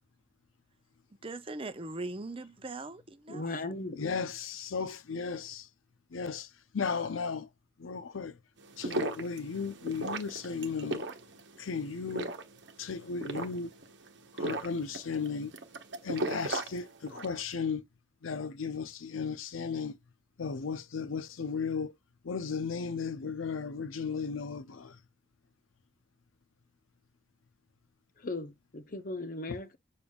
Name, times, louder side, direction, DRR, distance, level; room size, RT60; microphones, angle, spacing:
voice 1, 1.2-3.4, right 2 dB, 30° right, 0.6 m, -40 dB
voice 2, 3.3-4.1 28.2-29.8, left 2 dB, 45° left, 0.7 m, -37 dB
voice 3, 4.0-5.6 6.1-6.5 6.7-7.5 7.8-8.3 8.8-11.0 11.6-12.3 12.8-13.7 14.4-15.5 16.0-17.8 18.2-19.9 20.4-21.9 22.2-24.9, left 5 dB, 90° left, 0.6 m, -35 dB
sound 1, 8.6-17.4, right 2 dB, 60° right, 1.0 m, -37 dB
6.9 x 3.3 x 2.3 m
head